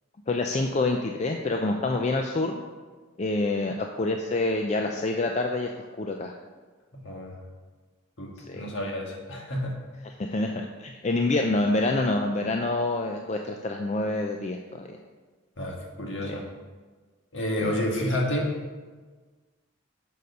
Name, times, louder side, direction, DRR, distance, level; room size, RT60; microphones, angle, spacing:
voice 1, 0.3-2.6 3.2-6.3 8.5-8.7 10.2-15.0 16.3-16.4 17.6-17.7, left 2 dB, 35° left, 3 dB, 0.4 m, -27 dB
voice 2, 6.9-7.4 8.2-9.8 15.6-16.5 17.3-18.5, left 1 dB, 65° left, -1 dB, 1.6 m, -30 dB
6.8 x 6.5 x 5.3 m, 1.4 s
head